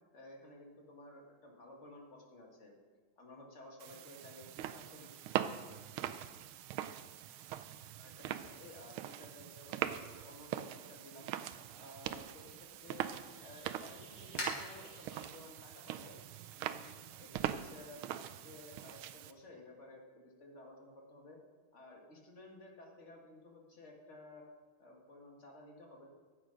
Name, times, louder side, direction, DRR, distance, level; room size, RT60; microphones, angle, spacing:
voice 1, 0.1-2.7 3.2-5.1 8.0-11.3 11.8-13.1 13.4-16.1 16.6-16.9 17.2-21.4 21.7-24.4 24.8-26.2, left 2 dB, 35° left, 0 dB, 1.9 m, -55 dB
sound 1, 3.8-19.3, right 11 dB, 80° right, 1.4 m, -42 dB
sound 2, 12.4-17.6, left 2 dB, 70° left, 3.5 m, -49 dB
13.0 x 7.3 x 5.2 m, 1.5 s
omnidirectional pair, 2.4 m